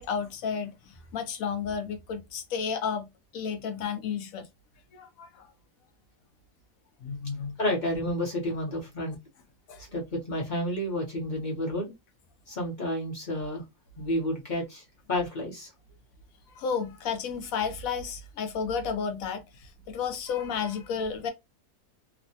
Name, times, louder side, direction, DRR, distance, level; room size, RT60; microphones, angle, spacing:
voice 1, 0.0-3.1 3.3-4.5 4.9-5.5 7.0-7.5 9.7-9.8 16.5-21.3, left 6 dB, 70° left, 0.9 m, -32 dB
voice 2, 7.6-9.2 9.9-11.9 12.5-13.6 14.0-14.8 15.1-15.7, left 1 dB, 40° left, 0.7 m, -30 dB
3.1 x 2.1 x 2.7 m
omnidirectional pair, 1.7 m